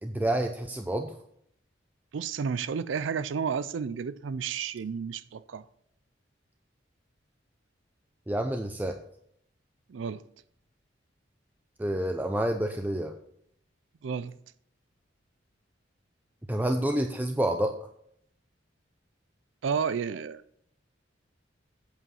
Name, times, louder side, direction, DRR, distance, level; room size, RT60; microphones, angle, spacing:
voice 1, 0.0-1.1 8.3-9.0 11.8-13.1 16.5-17.7, right 1 dB, 10° right, 0.5 m, -28 dB
voice 2, 2.1-5.6 9.9-10.2 14.0-14.3 19.6-20.4, right 6 dB, 80° right, 0.4 m, -31 dB
8.2 x 7.5 x 5.5 m
head